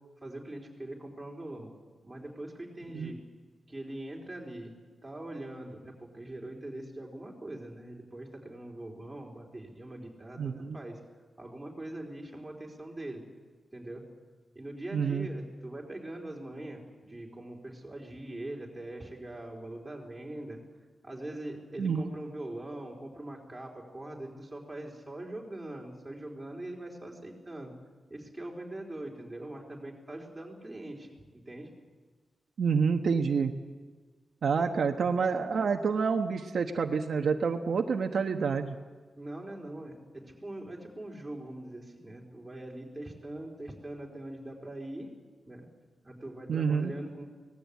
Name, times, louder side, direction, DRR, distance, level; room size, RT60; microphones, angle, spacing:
voice 1, 0.2-1.7 2.0-3.2 3.7-4.7 5.0-11.0 11.4-13.2 13.7-14.0 14.5-20.6 21.0-27.7 28.1-31.7 34.6-34.8 39.2-45.1 45.5-45.7 46.0-47.3, right 1 dB, 10° right, -2 dB, 4.1 m, -42 dB
voice 2, 10.4-10.8 14.9-15.3 21.8-22.1 32.6-33.5 34.4-38.8 46.5-46.9, right 5 dB, 65° right, 4 dB, 1.1 m, -28 dB
24.5 x 19.0 x 8.4 m, 1.4 s
wide cardioid pair, 160°, 0 cm